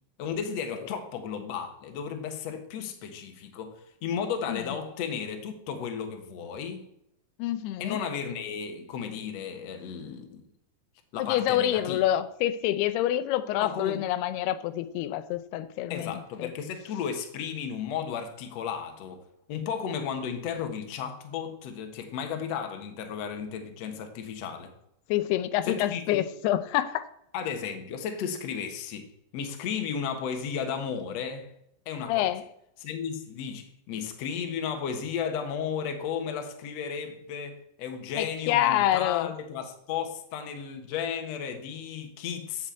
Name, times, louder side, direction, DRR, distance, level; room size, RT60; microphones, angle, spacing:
voice 1, 0.2-6.9 7.8-10.4 11.1-12.0 13.6-14.0 15.9-19.2 19.5-24.7 25.6-26.2 27.3-29.1 29.3-31.5 31.9-32.3 32.8-42.7, left 7 dB, 60° left, 2.0 m, -34 dB
voice 2, 7.4-8.0 11.2-16.5 25.1-27.1 32.1-32.4 38.2-39.3, left 13 dB, 90° left, 2.7 m, -27 dB
7.7 x 7.6 x 8.4 m
omnidirectional pair, 4.5 m